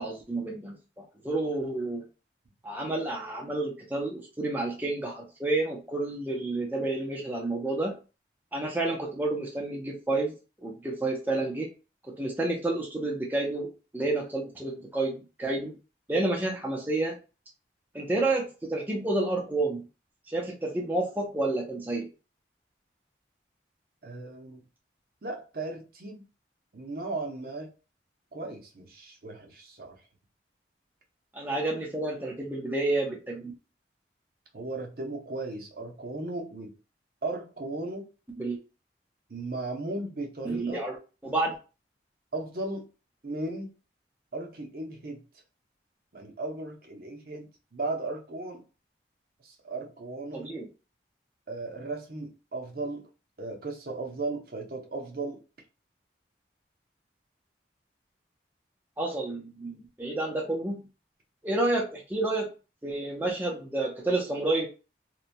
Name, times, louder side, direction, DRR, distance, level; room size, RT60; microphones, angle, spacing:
voice 1, 0.0-2.0 2.6-8.0 8.5-10.3 10.6-11.7 12.0-15.8 16.1-17.2 17.9-19.8 20.3-22.1 31.3-33.5 38.4-38.6 40.4-41.0 41.2-41.5 50.3-50.6 59.0-60.9 61.4-62.5 62.8-64.7, right 2 dB, 10° right, 0.4 m, -30 dB
voice 2, 24.0-24.6 25.2-26.2 26.7-27.7 28.3-30.0 34.5-36.7 37.2-38.1 39.3-40.8 42.3-42.9 43.2-43.7 44.3-45.2 46.1-48.6 49.4-50.5 51.5-53.1 53.4-55.4, right 2 dB, 55° right, 0.6 m, -36 dB
2.8 x 2.1 x 2.5 m
head